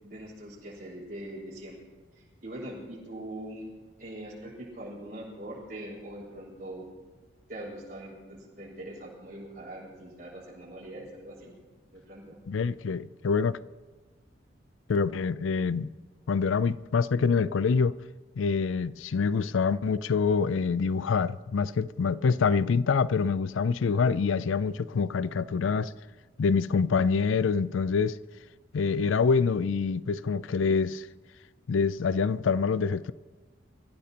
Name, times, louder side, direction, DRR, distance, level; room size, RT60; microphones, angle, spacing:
voice 1, 0.0-1.8 2.1-3.7 4.0-6.8 7.5-11.6 11.9-12.4, right 1 dB, 50° right, 5.3 m, -42 dB
voice 2, 12.5-13.6 14.9-15.9 16.3-18.0 18.4-25.9 26.4-28.2 28.7-31.1 31.7-33.1, left 5 dB, 85° left, 0.4 m, -26 dB
25.5 x 15.0 x 2.9 m
head